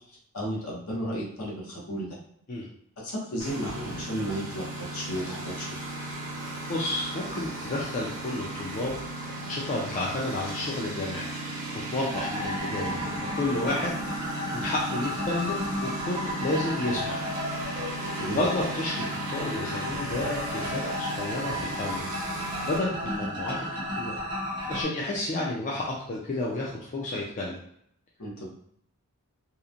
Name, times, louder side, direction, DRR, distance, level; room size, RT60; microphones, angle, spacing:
voice 1, 0.1-2.2 3.0-5.8 18.2-18.5 28.2-28.5, equal, 70° left, -4 dB, 0.8 m, -33 dB
Engine, 3.4-22.8, right 2 dB, 65° right, 0.8 m, -36 dB
voice 2, 6.7-8.9 9.3-11.3 11.9-13.9 14.5-17.2 18.3-22.1 22.7-24.2 24.7-27.6, left 2 dB, 35° left, -4 dB, 0.4 m, -31 dB
sound 1, 12.1-24.8, left 1 dB, 20° right, 0.6 m, -34 dB
2.8 x 2.1 x 2.4 m, 0.70 s
head